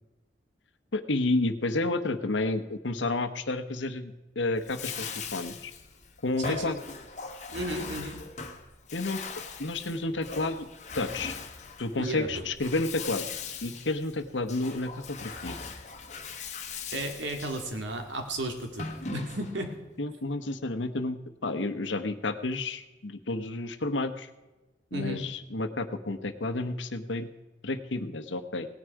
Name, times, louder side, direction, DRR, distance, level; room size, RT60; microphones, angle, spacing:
voice 1, 0.9-5.7 6.2-6.8 8.9-9.2 9.6-10.7 10.9-11.3 11.8-13.3 13.6-15.6 20.0-24.3 24.9-27.3 27.6-28.7, left 2 dB, 80° left, 9 dB, 1.0 m, -31 dB
Bathtub (filling or washing), 4.6-19.7, left 5 dB, 40° left, 1.2 m, -40 dB
voice 2, 6.4-6.7 7.5-8.2 12.0-12.4 16.9-18.9 19.1-19.7 24.9-25.2, right 1 dB, 80° right, 4 dB, 2.1 m, -34 dB
18.0 x 9.9 x 4.7 m, 1.1 s
head